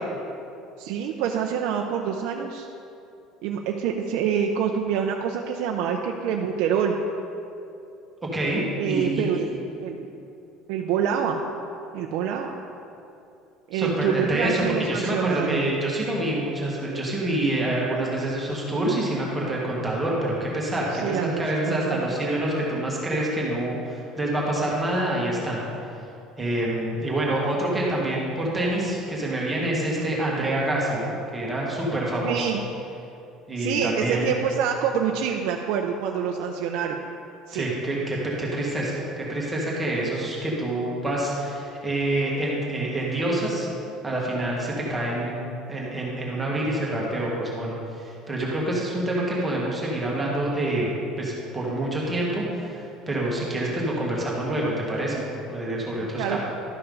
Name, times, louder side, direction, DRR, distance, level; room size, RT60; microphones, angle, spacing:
voice 1, 0.8-2.7 3.4-7.0 8.8-9.5 9.8-10.1 10.7-11.4 11.9-12.5 13.7-15.6 20.9-22.1 32.2-32.6 33.6-37.0 37.5-37.7 56.2-56.4, right 8 dB, 65° right, 2 dB, 0.6 m, -26 dB
voice 2, 8.3-9.3 13.7-25.6 26.4-32.5 33.5-34.3 37.5-43.7 44.0-50.9 51.2-55.2 55.5-56.4, right 1 dB, 10° right, -4 dB, 1.5 m, -27 dB
12.0 x 5.6 x 5.3 m, 2.7 s
cardioid pair, 175°, 0 cm